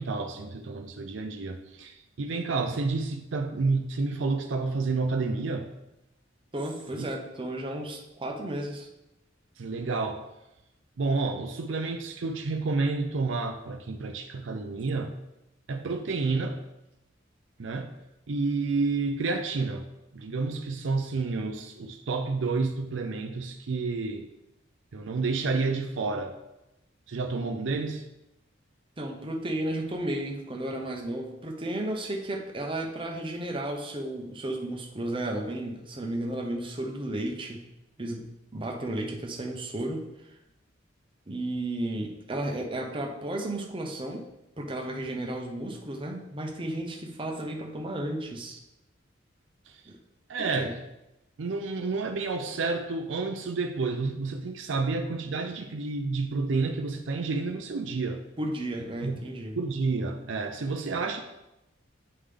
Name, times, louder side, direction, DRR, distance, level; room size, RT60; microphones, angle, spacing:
voice 1, 0.0-5.7 7.0-7.1 9.6-10.3 11.0-15.2 15.7-16.6 17.6-18.0 18.3-19.9 20.1-24.3 24.9-26.4 27.1-28.1 49.7-49.8 50.3-50.8 51.4-58.2 59.0-59.3 59.6-61.2, right 3 dB, 70° right, 0.5 m, -30 dB
voice 2, 6.5-8.9 29.0-37.6 38.0-40.1 41.3-44.3 44.6-48.6 49.9-50.0 50.4-50.7 58.4-59.6, right 1 dB, 25° right, 0.8 m, -33 dB
9.7 x 3.7 x 3.4 m
head